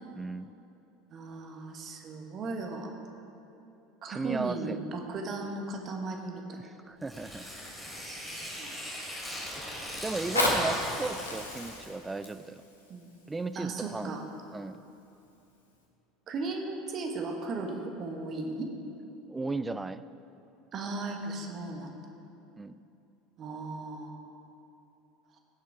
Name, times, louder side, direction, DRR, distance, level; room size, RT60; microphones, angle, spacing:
voice 1, 0.1-0.5 4.1-4.8 6.6-7.5 9.5-9.6 10.0-12.6 13.3-14.1 14.5-14.8 19.3-20.0 22.6-22.8, right 3 dB, 15° right, 14 dB, 0.4 m, -35 dB
voice 2, 1.1-2.9 4.0-6.6 8.0-9.0 12.9-13.2 13.5-14.3 16.3-18.7 20.7-21.9 23.4-24.1, right 3 dB, 35° right, 3 dB, 1.4 m, -36 dB
Tearing, 7.0-11.8, equal, ahead, 3.1 m, -40 dB
Fire, 10.2-15.1 15.7-15.8, left 1 dB, 80° left, 1.5 m, -33 dB
16.0 x 7.5 x 4.7 m, 2.8 s
figure-of-eight pair, 70°, 0 cm